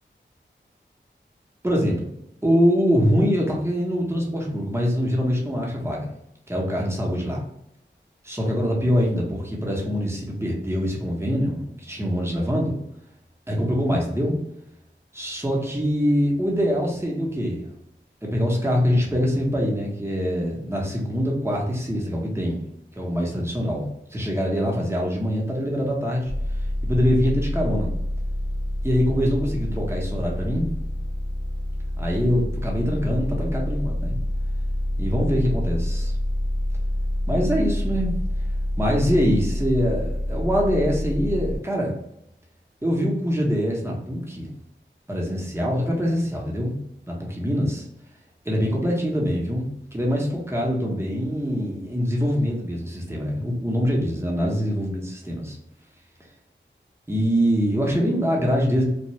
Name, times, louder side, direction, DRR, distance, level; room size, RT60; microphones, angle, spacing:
voice 1, 1.6-2.1 2.4-6.1 6.5-7.4 8.2-12.7 13.5-14.4 15.1-17.6 18.2-22.6 23.0-23.8 24.1-26.3 26.8-27.9 28.8-30.7 32.0-34.2 35.0-36.1 37.3-38.2 38.8-41.9 42.8-44.5 45.1-46.7 47.1-47.9 48.4-55.6 57.1-58.9, equal, 15° right, -2 dB, 0.9 m, -24 dB
sound 1, 26.3-41.6, left 1 dB, 30° left, 0.5 m, -27 dB
2.5 x 2.2 x 3.0 m, 0.80 s
cardioid pair, 40°, 20 cm